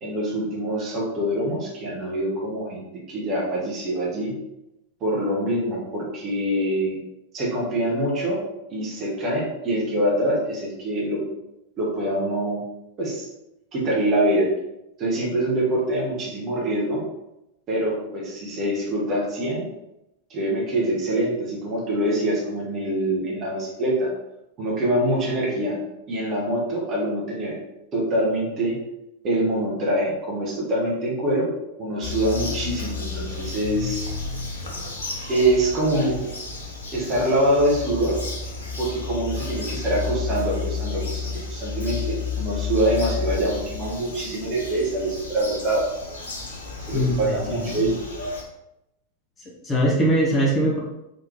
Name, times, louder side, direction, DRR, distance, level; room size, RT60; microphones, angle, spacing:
voice 1, 0.0-4.3 5.0-7.0 7.3-8.4 8.7-11.2 11.8-12.6 13.0-13.3 13.7-14.5 15.0-17.0 17.7-19.7 20.3-24.1 24.6-25.8 26.1-27.5 27.9-28.8 29.2-31.5 31.8-34.1 35.3-36.2 36.9-38.2 38.8-45.9 46.9-48.0, right 1 dB, 30° right, -4 dB, 1.5 m, -24 dB
Bird vocalization bird call bird song, 32.0-48.4, left 4 dB, 70° left, 1.1 m, -32 dB
voice 2, 46.9-47.8 49.6-50.8, equal, 20° left, -5 dB, 1.5 m, -22 dB
3.9 x 3.2 x 3.2 m, 0.87 s
figure-of-eight pair, 90°, 0 cm